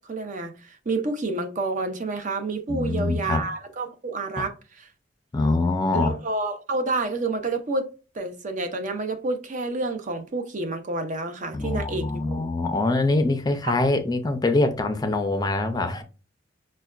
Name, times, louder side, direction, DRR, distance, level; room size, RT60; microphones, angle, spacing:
voice 1, 0.1-4.9 5.9-7.9 8.1-12.4 13.6-13.7, right 3 dB, 45° right, 0.6 m, -29 dB
voice 2, 2.7-3.4 4.4-4.5 5.3-6.1 11.5-16.0, left 2 dB, 20° left, 0.4 m, -24 dB
5.4 x 2.1 x 2.3 m
head